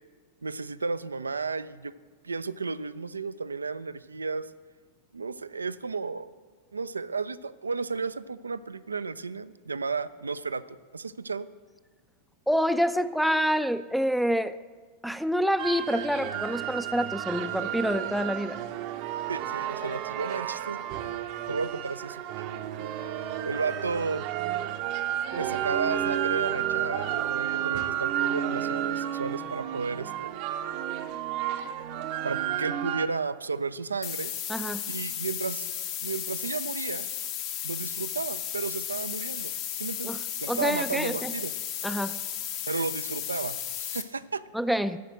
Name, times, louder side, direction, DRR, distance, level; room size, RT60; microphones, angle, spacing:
voice 1, 0.4-1.9 2.2-4.5 5.1-6.3 6.7-10.6 10.9-11.5 19.3-20.9 21.5-22.9 23.4-24.3 25.3-30.4 32.2-34.3 34.9-35.7 36.0-37.1 37.6-40.1 40.4-41.5 42.7-44.4, right 4 dB, 75° right, 14 dB, 0.3 m, -33 dB
voice 2, 12.5-14.6 15.0-18.6 34.5-34.8 40.0-40.2 40.5-41.3 41.8-42.2 44.5-45.0, equal, ahead, 13 dB, 0.4 m, -27 dB
sound 1, 15.6-33.1, right 10 dB, 45° right, 0.7 m, -31 dB
sound 2, 34.0-44.0, left 10 dB, 45° left, 0.9 m, -34 dB
13.5 x 4.9 x 7.7 m, 1.4 s
figure-of-eight pair, 90°, 0 cm